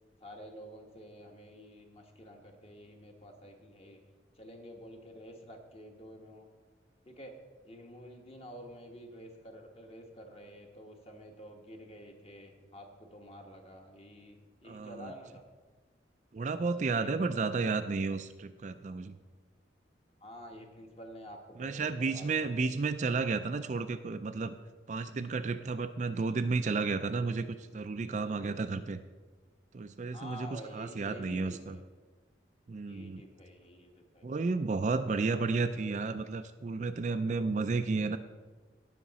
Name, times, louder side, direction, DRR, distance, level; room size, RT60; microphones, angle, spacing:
voice 1, 0.2-4.0 4.4-6.5 7.0-7.3 7.6-15.4 17.0-17.7 20.2-21.8 22.1-22.7 30.1-31.8 32.8-34.4, equal, 30° left, 3 dB, 1.2 m, -49 dB
voice 2, 14.6-15.1 16.3-19.1 21.6-24.5 24.9-27.5 27.7-29.0 29.7-31.8 32.7-33.2 34.2-38.2, right 4 dB, 40° right, 9 dB, 0.4 m, -32 dB
17.5 x 5.8 x 4.1 m, 1.3 s
head